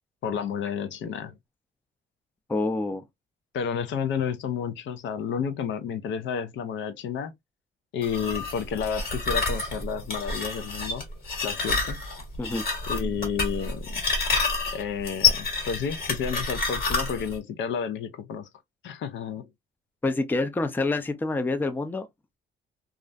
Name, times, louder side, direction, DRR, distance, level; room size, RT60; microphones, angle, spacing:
voice 1, 0.2-1.3 3.5-7.3 7.9-11.1 11.4-12.0 12.9-14.0 14.7-18.5 18.8-19.5, left 7 dB, 70° left, 0.5 m, -31 dB
voice 2, 2.5-3.0 12.4-12.6 20.0-22.1, left 2 dB, 10° left, 0.4 m, -27 dB
sound 1, 8.0-17.4, left 4 dB, 50° left, 1.3 m, -28 dB
2.4 x 2.1 x 2.5 m
cardioid pair, 90°, 20 cm